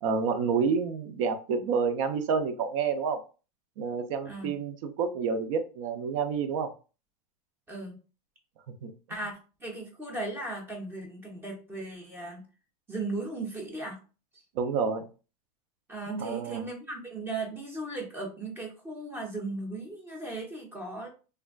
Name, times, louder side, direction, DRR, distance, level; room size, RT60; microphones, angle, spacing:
voice 1, 0.0-3.2 3.8-6.7 8.8-8.9 14.6-15.1 16.1-16.6, right 5 dB, 55° right, 8 dB, 0.6 m, -29 dB
voice 2, 7.7-8.0 9.1-12.4 12.9-14.0 14.3-14.4 15.9-21.1, right 2 dB, 10° right, 0 dB, 0.8 m, -37 dB
3.3 x 2.4 x 2.2 m, 0.34 s
supercardioid pair, 150°, 20 cm